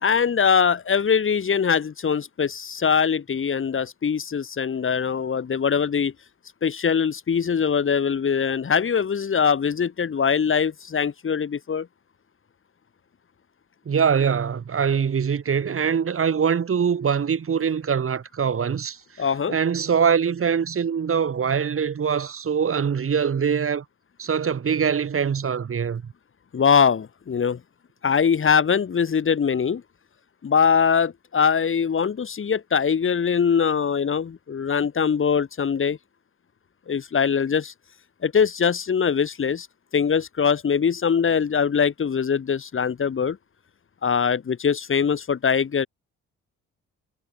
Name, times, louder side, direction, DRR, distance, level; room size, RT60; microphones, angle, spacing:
voice 1, 0.0-6.1 6.6-11.9 19.2-19.6 26.5-27.6 28.0-29.8 30.4-36.0 36.9-37.7 38.2-39.7 39.9-43.4 44.0-45.9, left 6 dB, 45° left, 3.3 m, -22 dB
voice 2, 13.9-19.0 19.5-23.8 24.2-26.0, right 7 dB, 45° right, 6.0 m, -23 dB
cardioid pair, 90°, 30 cm